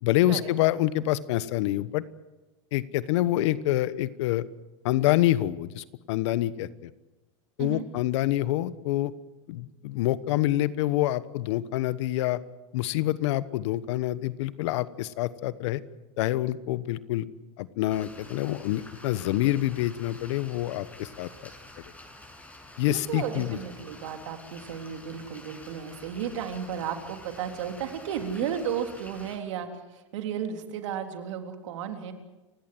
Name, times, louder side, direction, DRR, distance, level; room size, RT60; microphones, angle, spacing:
voice 1, 0.0-2.0 2.7-4.4 4.8-6.9 7.6-9.1 9.5-12.4 12.7-15.8 16.2-17.3 17.6-21.3 22.8-23.6, left 15 dB, 65° left, 16 dB, 1.2 m, -26 dB
sound 1, 17.9-29.4, left 1 dB, 10° left, 6.9 m, -49 dB
voice 2, 22.8-32.1, right 8 dB, 75° right, 5 dB, 3.6 m, -34 dB
29.5 x 16.5 x 7.8 m, 1.1 s
hypercardioid pair, 105°, 16 cm